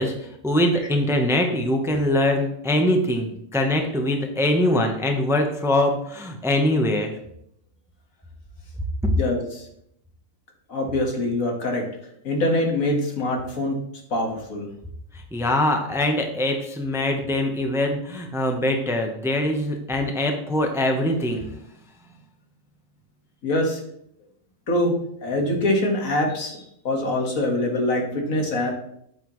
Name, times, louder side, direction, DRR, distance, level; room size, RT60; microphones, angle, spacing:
voice 1, 0.0-7.2 9.0-9.1 15.3-21.5, left 1 dB, ahead, 4 dB, 0.8 m, -23 dB
voice 2, 9.2-9.6 10.7-11.9 12.2-13.8 14.1-14.7 23.4-23.8 24.7-24.9 25.2-28.7, left 1 dB, 75° left, 1 dB, 2.0 m, -24 dB
8.8 x 8.5 x 3.1 m, 0.73 s
omnidirectional pair, 1.4 m